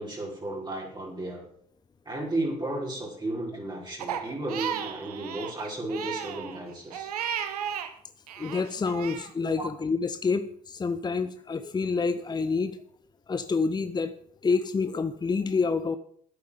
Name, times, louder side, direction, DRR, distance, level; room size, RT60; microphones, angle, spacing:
voice 1, 0.0-1.4 2.0-7.1 9.6-9.7, right 1 dB, 25° right, -3 dB, 5.0 m, -33 dB
Crying sobbing, 4.0-7.9 8.3-9.3, right 9 dB, 85° right, 1.1 m, -34 dB
voice 2, 8.4-12.8 13.3-14.1 14.4-16.0, left 4 dB, 20° left, 11 dB, 0.9 m, -28 dB
11.5 x 8.5 x 7.3 m, 0.62 s
hypercardioid pair, 65°, 19 cm